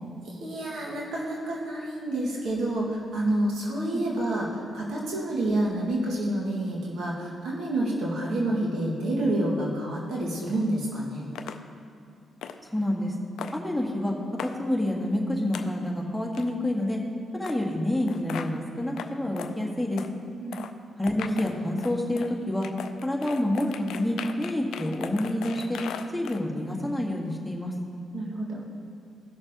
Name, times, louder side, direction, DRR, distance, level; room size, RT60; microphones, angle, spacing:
voice 1, 0.2-11.3 20.4-20.6 28.1-28.6, right 1 dB, 70° right, -3 dB, 1.8 m, -28 dB
sound 1, 11.4-11.6 12.4-12.6 13.4-13.6 14.4-14.5 15.5-15.7 16.3-16.5 17.4-17.6 18.1-18.5 19.0-19.1 19.4-19.5 20.0-20.1 20.5-20.7 21.0-22.3 22.6-26.4, left 8 dB, 70° left, 0.4 m, -38 dB
voice 2, 12.7-13.1 13.5-14.1 14.4-17.0 17.3-20.0 21.0-22.7 23.0-25.8 26.1-27.7, left 1 dB, ahead, -2 dB, 1.7 m, -28 dB
16.0 x 6.4 x 2.9 m, 2.5 s
hypercardioid pair, 40°, 0 cm